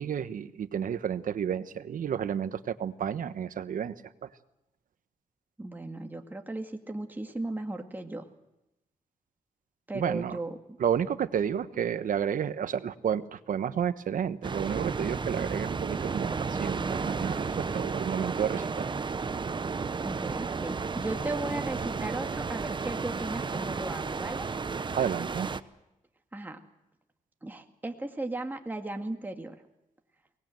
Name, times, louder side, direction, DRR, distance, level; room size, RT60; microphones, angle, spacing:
voice 1, 0.0-3.9 4.2-4.3 9.9-10.4 10.8-18.9 24.9-25.5, right 8 dB, 75° right, 13 dB, 1.1 m, -31 dB
voice 2, 5.6-8.2 9.9-10.8 20.0-24.5 26.3-26.6 27.4-29.6, right 2 dB, 15° right, 4 dB, 2.0 m, -36 dB
sound 1, 14.4-25.6, right 4 dB, 35° right, 0.9 m, -33 dB
23.5 x 19.5 x 7.8 m, 0.91 s
cardioid pair, 100°, 14 cm